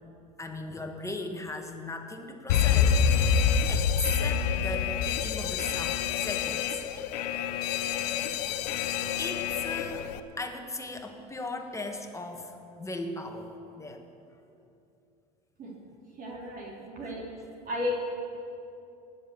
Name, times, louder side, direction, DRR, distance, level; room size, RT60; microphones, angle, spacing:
voice 1, 0.4-3.9 4.2-6.8 7.9-8.9 9.2-14.0 17.0-17.1, left 2 dB, 15° left, 4 dB, 1.8 m, -38 dB
Alarm, 2.5-10.2, left 7 dB, 80° left, 0.7 m, -27 dB
voice 2, 16.2-17.3 17.7-18.0, left 2 dB, 45° right, -3 dB, 3.7 m, -33 dB
18.5 x 7.5 x 7.3 m, 2.7 s
hypercardioid pair, 80°, 20 cm